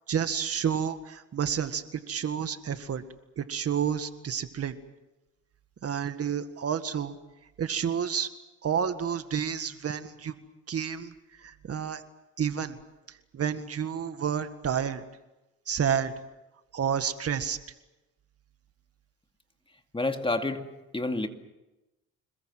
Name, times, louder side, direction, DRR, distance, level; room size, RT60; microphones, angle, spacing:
voice 1, 0.1-3.0 3.4-4.8 5.8-7.2 7.6-8.3 8.6-10.3 10.7-11.1 11.4-12.0 12.4-12.8 13.3-15.0 15.7-16.1 16.7-17.6, right 8 dB, 50° right, 10 dB, 1.8 m, -30 dB
voice 2, 19.9-20.6 20.9-21.3, left 2 dB, 15° left, 6 dB, 2.3 m, -28 dB
27.0 x 21.5 x 7.8 m, 1.0 s
cardioid pair, 90°, 30 cm